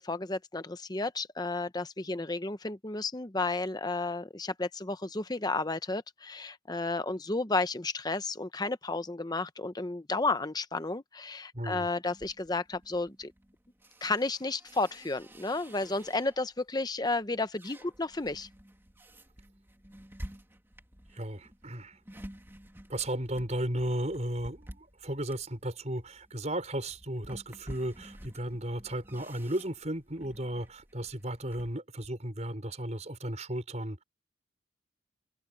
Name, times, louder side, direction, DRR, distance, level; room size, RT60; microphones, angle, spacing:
voice 1, 0.0-13.3 14.0-18.5, left 3 dB, 20° left, 0.8 m, -32 dB
voice 2, 11.5-11.9 21.1-22.0 22.9-34.0, right 1 dB, 35° right, 5.5 m, -35 dB
sound 1, 12.1-16.6 17.1-31.8, equal, 10° right, 2.5 m, -51 dB
head